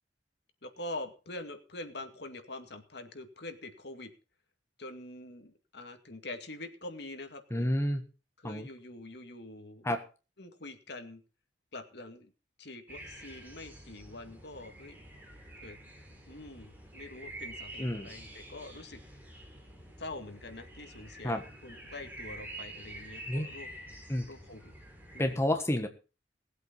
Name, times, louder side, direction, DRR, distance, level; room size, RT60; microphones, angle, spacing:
voice 1, 0.6-4.1 4.8-7.7 8.4-9.8 10.4-11.2 11.7-12.3 12.6-15.0 15.6-15.8 16.3-19.0 20.0-23.7 24.3-24.7 25.1-25.4, left 2 dB, 60° left, 6 dB, 2.2 m, -45 dB
voice 2, 7.5-8.0 8.4-8.7 9.8-10.0 17.8-18.1 21.2-21.4 23.3-23.5 24.1-24.3 25.2-25.9, left 1 dB, 15° left, 5 dB, 1.3 m, -30 dB
sound 1, 12.9-25.4, right 1 dB, 10° right, 3.7 m, -48 dB
19.0 x 8.2 x 5.4 m, 0.33 s
head